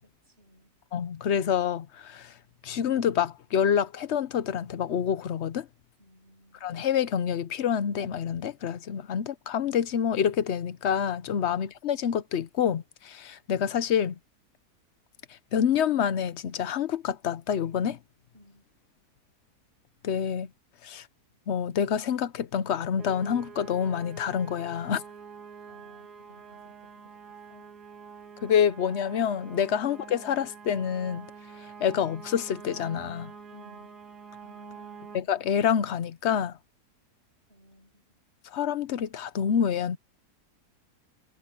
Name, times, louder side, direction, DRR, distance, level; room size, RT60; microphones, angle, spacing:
voice 1, 0.0-0.7 6.0-6.7 18.3-18.6 25.7-27.8 33.5-34.0 34.4-35.1 37.5-38.1, equal, 35° right, 6.2 m, -58 dB
voice 2, 0.9-2.3 2.6-5.7 6.6-14.2 15.5-18.0 20.0-20.5 20.8-21.1 21.5-25.0 28.4-31.3 31.8-33.3 35.1-36.6 38.5-40.0, left 8 dB, 55° left, 0.9 m, -27 dB
sound 1, 23.0-35.2, right 6 dB, 85° right, 2.1 m, -46 dB
omnidirectional pair, 1.7 m